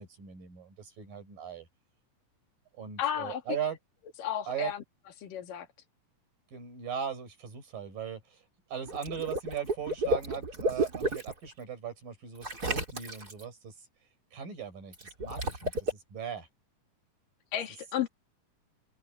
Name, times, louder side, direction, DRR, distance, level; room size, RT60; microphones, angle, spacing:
voice 1, 0.0-1.7 2.8-3.8 4.5-4.7 6.5-8.4 8.7-13.7 14.3-16.5, right 8 dB, 90° right, 7.5 m, -39 dB
voice 2, 3.0-3.4 4.2-4.8 5.2-5.7 17.5-18.1, left 10 dB, 80° left, 3.8 m, -33 dB
Water / Liquid, 8.9-11.3 12.4-13.4 14.9-15.9, right 1 dB, 25° right, 5.0 m, -32 dB
omnidirectional pair, 3.8 m